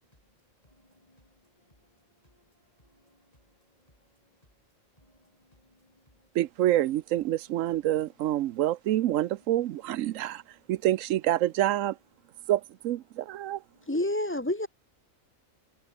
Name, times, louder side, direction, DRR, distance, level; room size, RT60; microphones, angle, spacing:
voice 1, 0.6-4.4 5.0-6.3 9.6-9.9 10.1-10.3 10.6-10.7 13.7-13.9, left 1 dB, 30° left, 6.5 m, -65 dB
voice 2, 6.3-10.4 10.7-12.0 12.5-13.6, right 13 dB, 80° right, 0.9 m, -27 dB
voice 3, 13.8-14.7, left 1 dB, 10° left, 1.2 m, -28 dB
omnidirectional pair, 1.4 m